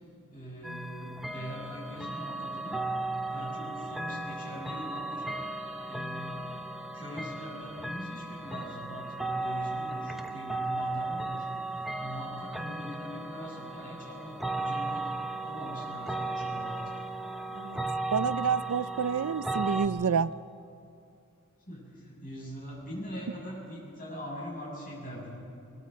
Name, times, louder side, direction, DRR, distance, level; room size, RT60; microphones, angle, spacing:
voice 1, 0.3-2.8 3.2-5.5 5.9-6.7 6.9-11.5 11.7-15.1 15.4-16.8 21.7-25.4, equal, 40° left, 7.4 m, -42 dB
sound 1, 0.6-19.9, right 2 dB, ahead, 0.8 m, -35 dB
voice 2, 18.1-20.3, right 6 dB, 90° right, 0.5 m, -28 dB
22.5 x 22.0 x 5.3 m
head